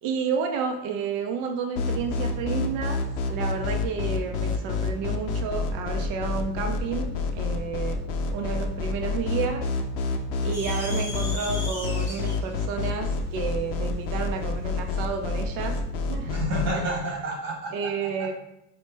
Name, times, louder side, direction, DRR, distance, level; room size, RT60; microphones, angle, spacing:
voice 1, 0.0-3.0 3.3-8.0 8.3-9.6 10.4-15.8 16.1-16.3 17.7-18.3, right 5 dB, 45° right, 4 dB, 0.5 m, -31 dB
sound 1, 1.7-16.7, left 4 dB, 70° left, 0.6 m, -28 dB
sound 2, 10.5-15.0, left 1 dB, 5° right, 0.9 m, -39 dB
voice 2, 16.2-18.3, right 1 dB, 90° right, -1 dB, 1.5 m, -30 dB
4.3 x 2.1 x 3.2 m, 0.81 s
supercardioid pair, 110°, 47 cm